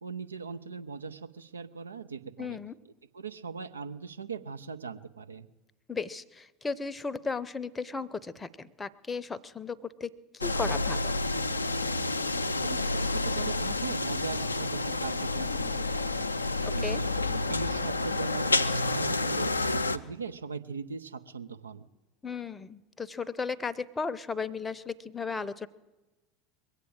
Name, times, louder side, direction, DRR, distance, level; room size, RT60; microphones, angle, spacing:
voice 1, 0.0-2.6 3.1-5.5 12.2-16.3 16.7-21.9, right 5 dB, 80° right, 8 dB, 0.7 m, -39 dB
voice 2, 2.4-2.7 5.9-11.1 16.6-17.0 22.2-25.7, left 4 dB, 15° left, 15 dB, 0.7 m, -35 dB
sound 1, 10.4-20.0, left 2 dB, 85° left, 0.5 m, -29 dB
21.5 x 8.3 x 7.8 m, 1.1 s
figure-of-eight pair, 75°, 0 cm